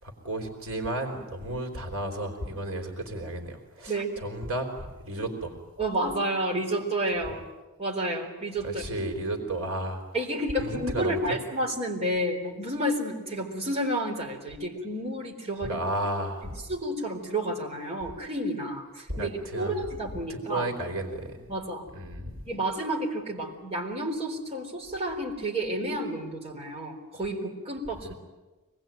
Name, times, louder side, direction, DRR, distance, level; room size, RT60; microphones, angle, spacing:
voice 1, 0.0-5.5 8.6-10.0 10.6-11.3 15.6-16.5 19.1-19.8 20.1-21.5 21.9-22.4 28.0-28.1, right 1 dB, 65° right, 3 dB, 3.8 m, -33 dB
voice 2, 5.8-7.4 7.8-8.8 10.1-15.8 16.7-20.7 21.5-21.8 22.5-28.1, right 1 dB, 30° right, -1 dB, 3.9 m, -30 dB
25.5 x 20.0 x 9.1 m, 1.2 s
head